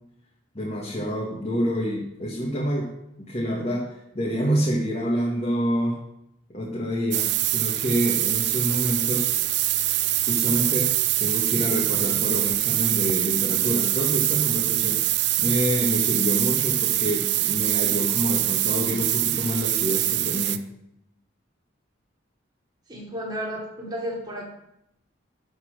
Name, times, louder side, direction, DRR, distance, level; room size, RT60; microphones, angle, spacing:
voice 1, 0.6-2.9 3.2-6.0 6.5-9.3 10.3-20.6, equal, 35° left, -4 dB, 1.6 m, -27 dB
sound 1, 7.1-20.6, right 15 dB, 60° right, 0.4 m, -24 dB
voice 2, 22.9-24.4, equal, 20° right, -3 dB, 2.8 m, -32 dB
12.0 x 4.4 x 6.6 m, 0.81 s
head